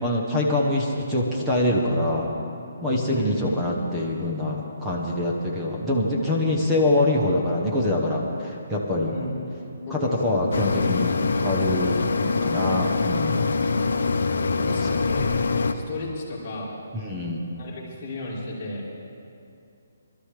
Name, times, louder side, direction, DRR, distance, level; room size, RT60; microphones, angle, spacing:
voice 1, 0.0-2.3 2.8-9.1 9.9-12.0 12.4-13.5 16.9-17.4, left 1 dB, 5° right, -4 dB, 0.8 m, -24 dB
voice 2, 3.0-3.4 9.0-9.3 9.8-10.4 14.5-15.4 15.7-16.8 17.6-18.8, left 2 dB, 20° left, -9 dB, 2.5 m, -34 dB
sound 1, 10.5-15.7, left 4 dB, 70° left, 0.7 m, -24 dB
22.0 x 12.5 x 3.3 m, 2.6 s
hypercardioid pair, 180°, 0 cm